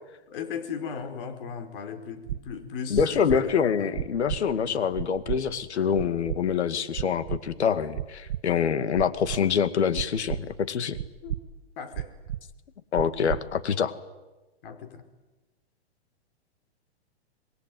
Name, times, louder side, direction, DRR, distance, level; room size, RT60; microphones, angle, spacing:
voice 1, 0.3-3.9 4.6-4.9 11.2-11.3 11.8-12.1 14.6-15.0, left 6 dB, 55° left, 8 dB, 4.8 m, -37 dB
sound 1, 2.3-2.4 2.9-3.4 3.9-4.4 4.9-5.4 5.9-6.4 6.9-7.4 7.9-8.4 8.9-9.4 9.9-10.4 10.9-11.4 11.9-12.4 12.9-13.4, right 12 dB, 70° right, 1.2 m, -31 dB
voice 2, 2.9-11.0 12.9-13.9, left 7 dB, 80° left, 12 dB, 2.3 m, -25 dB
27.0 x 21.5 x 9.4 m, 1.1 s
hypercardioid pair, 135°, 33 cm